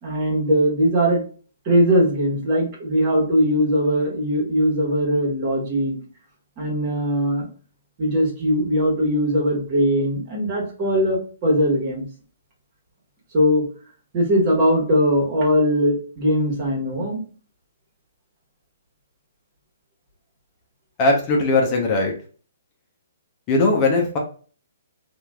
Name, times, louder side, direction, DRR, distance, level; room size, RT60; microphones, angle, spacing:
voice 1, 0.0-1.2 1.6-5.9 6.6-7.5 8.0-12.1 13.3-13.6 14.1-17.2, equal, 35° right, -2 dB, 1.4 m, -20 dB
voice 2, 21.0-22.1 23.5-24.2, left 2 dB, 30° left, 0 dB, 0.7 m, -19 dB
3.0 x 2.5 x 2.3 m, 0.40 s
hypercardioid pair, 140°, 0 cm